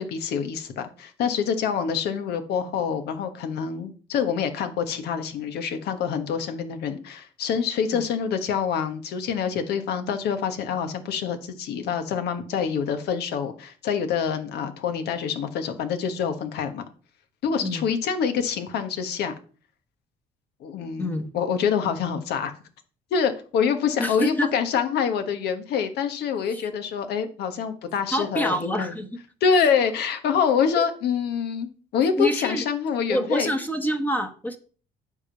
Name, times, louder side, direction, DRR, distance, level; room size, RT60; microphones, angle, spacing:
voice 1, 0.0-16.8 17.4-19.3 20.6-22.5 23.1-28.9 29.4-33.5, left 7 dB, 75° left, 8 dB, 1.4 m, -26 dB
voice 2, 21.0-21.3 24.0-24.5 28.1-29.2 30.8-30.9 32.2-32.6 33.1-34.6, equal, 10° left, 7 dB, 1.2 m, -26 dB
9.7 x 3.7 x 7.0 m, 0.40 s
cardioid pair, 110°, 17 cm